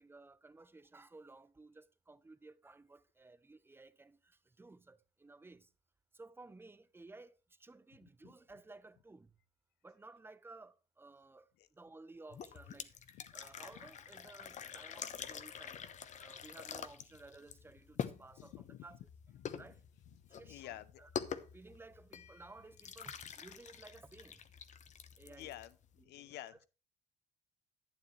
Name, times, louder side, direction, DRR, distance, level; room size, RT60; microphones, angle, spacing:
voice 1, 0.0-5.7 6.1-7.3 7.6-9.3 9.8-11.5 11.8-12.9 13.3-15.9 16.2-19.0 19.6-19.8 20.4-21.1 21.5-24.4 25.2-25.6 26.0-26.6, right 3 dB, 15° right, 0.8 m, -56 dB
sound 1, 12.3-26.0, left 7 dB, 45° left, 1.0 m, -47 dB
voice 2, 18.5-18.8 19.4-19.6 20.5-21.0 25.4-25.7 26.1-26.6, left 13 dB, 80° left, 0.9 m, -49 dB
11.5 x 9.6 x 3.3 m
cardioid pair, 110°, 17 cm